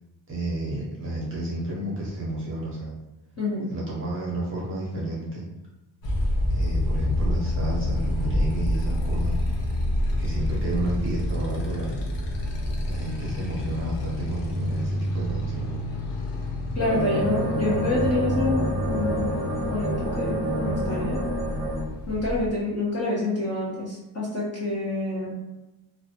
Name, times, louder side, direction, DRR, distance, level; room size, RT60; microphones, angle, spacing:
voice 1, 0.3-3.0 3.7-5.4 6.5-9.4 10.2-12.0 12.9-15.8, right 2 dB, 25° right, -6 dB, 0.5 m, -31 dB
voice 2, 3.4-3.7 16.7-21.2 22.1-25.4, left 2 dB, 35° left, -6 dB, 0.4 m, -27 dB
Motorcycle, 6.0-22.5, left 1 dB, 85° left, 0.6 m, -28 dB
sound 1, 16.8-21.8, equal, 15° left, 1.1 m, -28 dB
2.5 x 2.1 x 2.6 m, 0.98 s
cardioid pair, 180°, 49 cm